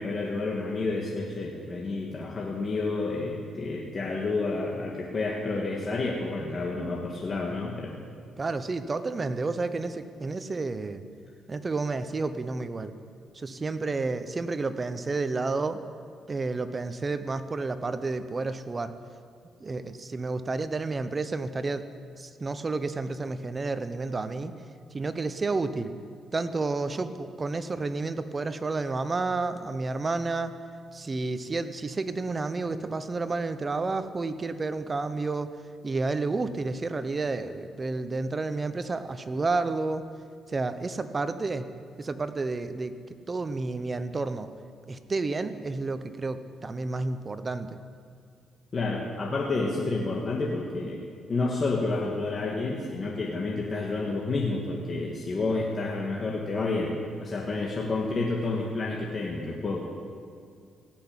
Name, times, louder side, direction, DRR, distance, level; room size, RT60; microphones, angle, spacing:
voice 1, 0.0-8.0 48.7-51.0 51.3-56.9 57.2-59.8, left 3 dB, 40° left, -2 dB, 1.8 m, -30 dB
voice 2, 8.4-11.0 11.5-12.9 13.3-15.8 16.3-18.9 19.6-21.8 22.2-24.5 24.9-25.9 26.3-30.5 30.9-35.5 35.8-40.0 40.5-41.7 42.0-44.5 44.9-47.7, right 3 dB, 30° right, 11 dB, 0.8 m, -30 dB
17.0 x 6.1 x 8.9 m, 2.2 s
cardioid pair, 90°, 0 cm